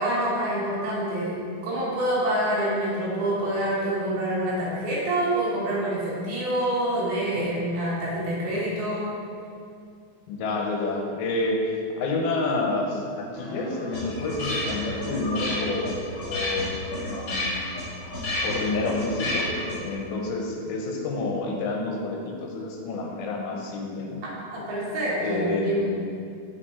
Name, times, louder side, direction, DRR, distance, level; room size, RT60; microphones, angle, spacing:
voice 1, 0.0-1.4 1.6-9.1 24.2-25.9, right 1 dB, 85° right, -7 dB, 3.5 m, -26 dB
voice 2, 10.3-16.0 16.3-17.7 18.4-19.5 19.8-24.2 25.2-25.8, left 2 dB, 85° left, 0 dB, 2.6 m, -29 dB
sound 1, 13.3-19.9, left 1 dB, 55° left, 1.4 m, -31 dB
6.8 x 4.5 x 4.3 m, 2.3 s
omnidirectional pair, 4.4 m